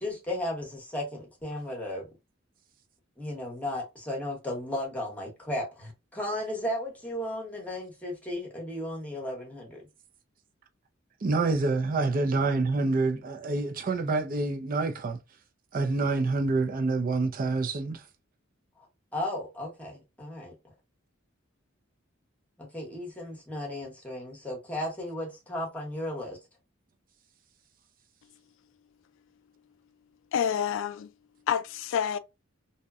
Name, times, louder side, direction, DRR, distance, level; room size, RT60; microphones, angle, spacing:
voice 1, 0.0-2.1 3.2-9.8 19.1-20.5 22.6-26.4, left 1 dB, 5° left, 0.9 m, -35 dB
voice 2, 11.2-15.2 15.7-18.0, right 3 dB, 45° right, 0.4 m, -27 dB
voice 3, 30.3-31.1 31.5-32.2, left 8 dB, 65° left, 0.3 m, -28 dB
2.7 x 2.1 x 2.3 m
head